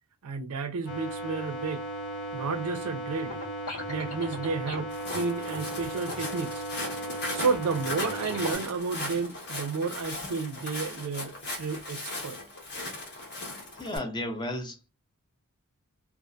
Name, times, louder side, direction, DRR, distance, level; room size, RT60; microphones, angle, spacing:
voice 1, 0.2-1.8 2.3-3.3 3.9-6.6 7.3-12.4, right 4 dB, 75° right, 0.4 m, -31 dB
sound 1, 0.9-8.6, right 1 dB, 80° left, 1.2 m, -36 dB
Walk footsteps, 4.9-14.0, left 2 dB, 50° left, 1.0 m, -38 dB
voice 2, 13.7-14.9, left 1 dB, 20° left, 0.5 m, -34 dB
2.5 x 2.3 x 2.2 m
head